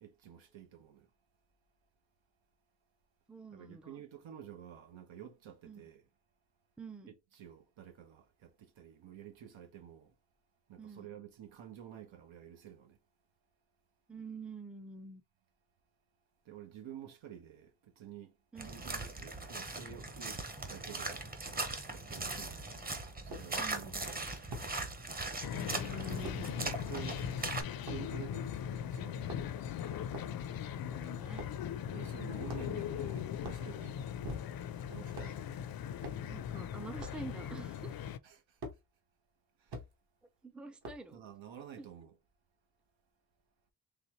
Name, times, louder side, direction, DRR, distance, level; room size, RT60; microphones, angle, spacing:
voice 1, 0.0-1.1 3.5-6.1 7.1-10.2 10.7-13.0 16.4-21.2 21.9-22.8 23.2-24.4 26.3-27.3 27.7-29.4 29.9-30.0 31.9-34.1 34.9-35.4 38.2-38.6 39.6-39.8 41.1-42.2, right 10 dB, 85° right, 1.2 m, -51 dB
voice 2, 3.3-4.0 5.7-5.8 6.8-7.1 10.8-11.1 14.1-15.2 18.5-18.7 22.2-22.4 23.6-24.1 25.5-26.5 30.8-31.5 36.3-38.0 40.4-41.2 41.8-41.9, right 3 dB, ahead, 0.4 m, -47 dB
Footsteps Walking Boot Mud to Puddle to Gravel, 18.6-27.6, right 2 dB, 20° right, 0.8 m, -40 dB
sound 1, 23.3-23.5 24.5-24.7 26.2-26.4 27.9-28.0 29.1-29.7 30.1-30.4 31.3-31.6 32.5-32.9 33.4-33.7 34.2-34.7 35.1-35.4 36.0-36.3 37.0-37.2 38.6-38.8 39.7-39.9 40.8-41.1, equal, 60° right, 1.6 m, -44 dB
sound 2, 25.4-38.2, left 9 dB, 55° left, 0.5 m, -39 dB
4.2 x 3.3 x 3.1 m
wide cardioid pair, 130°, 45 cm